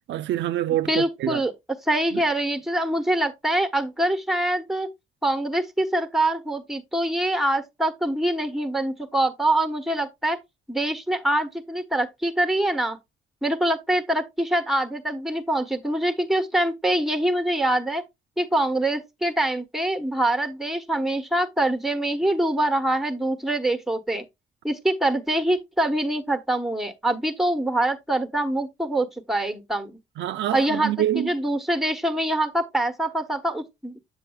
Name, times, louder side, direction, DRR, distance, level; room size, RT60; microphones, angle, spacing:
voice 1, 0.1-1.4 2.1-2.2 30.2-31.3, right 12 dB, 70° right, 0.4 m, -26 dB
voice 2, 0.9-1.5 1.9-4.9 5.2-10.4 10.7-13.0 13.4-18.0 18.4-24.2 24.6-30.0 30.5-34.0, right 1 dB, ahead, 1.1 m, -24 dB
7.5 x 7.1 x 2.3 m
cardioid pair, 90°, 20 cm